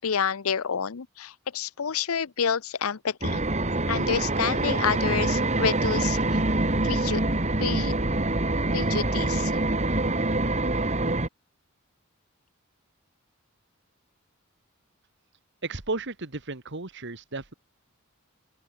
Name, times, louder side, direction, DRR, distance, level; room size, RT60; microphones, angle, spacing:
voice 1, 0.0-3.4 3.9-6.4 6.8-7.2 7.6-7.9 8.7-9.6, left 7 dB, 85° left, 0.7 m, -29 dB
sound 1, 3.2-11.3, right 2 dB, 35° right, 2.6 m, -25 dB
voice 2, 15.6-17.5, right 3 dB, 55° right, 2.1 m, -34 dB
open air
head